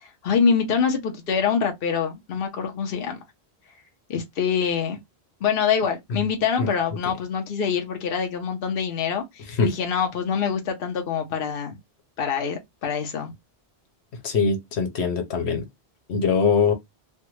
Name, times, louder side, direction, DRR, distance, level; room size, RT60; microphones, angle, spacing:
voice 1, 0.0-3.2 4.1-5.0 5.4-11.8 12.2-13.3, left 6 dB, 65° left, 0.9 m, -25 dB
voice 2, 14.2-15.6 16.1-16.7, left 5 dB, 90° left, 1.1 m, -22 dB
3.4 x 2.1 x 3.0 m
omnidirectional pair, 1.1 m